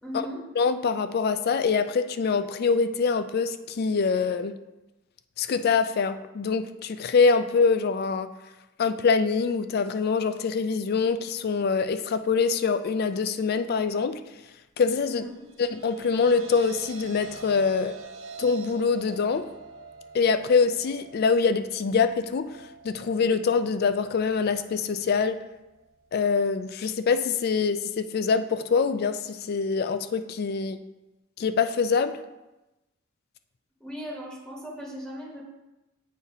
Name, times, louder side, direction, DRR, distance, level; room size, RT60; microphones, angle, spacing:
voice 1, 0.0-0.4 15.0-15.4 33.8-35.4, equal, 5° left, -4 dB, 1.0 m, -37 dB
voice 2, 0.6-4.5 5.4-8.3 8.8-14.2 14.8-15.2 15.6-18.0 18.4-19.4 20.1-25.4 26.1-30.8 31.4-32.2, left 5 dB, 50° left, 10 dB, 0.3 m, -24 dB
sound 1, 15.3-27.6, right 4 dB, 85° right, 0.8 m, -47 dB
8.3 x 2.8 x 4.7 m, 1.0 s
head